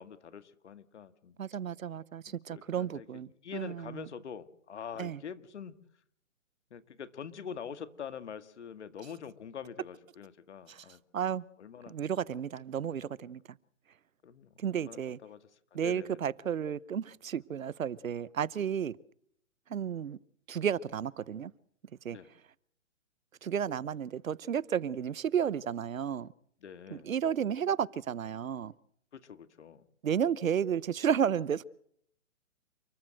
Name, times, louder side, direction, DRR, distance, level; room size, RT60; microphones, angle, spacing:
voice 1, 0.0-1.4 2.5-3.1 3.4-5.8 6.7-11.0 11.6-11.9 14.2-15.4 15.8-16.3 22.1-22.3 26.6-27.1 29.1-29.8, left 7 dB, 60° left, 1.9 m, -45 dB
voice 2, 1.4-4.0 5.0-5.2 10.7-10.8 11.1-11.5 11.9-13.6 14.6-15.2 15.7-19.0 19.7-20.2 20.5-21.5 22.0-22.2 23.4-26.3 26.9-28.7 30.0-31.6, right 8 dB, 85° right, 1.0 m, -32 dB
29.0 x 14.0 x 7.9 m
hypercardioid pair, 160°, 39 cm